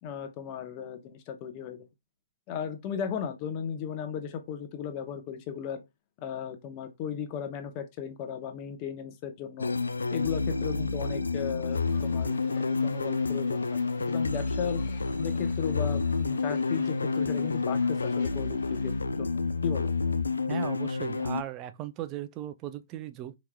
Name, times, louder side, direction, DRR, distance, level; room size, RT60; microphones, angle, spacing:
voice 1, 0.0-1.8 2.5-5.8 6.2-9.7 10.1-14.8 15.2-18.9 19.2-19.9, left 8 dB, 30° left, 0.8 m, -36 dB
sound 1, 9.6-21.4, left 4 dB, 80° left, 0.3 m, -29 dB
sound 2, 11.7-19.0, left 5 dB, 55° left, 1.3 m, -51 dB
voice 2, 20.5-23.4, right 12 dB, 25° right, 0.4 m, -37 dB
4.6 x 2.9 x 2.2 m
figure-of-eight pair, 125°, 0 cm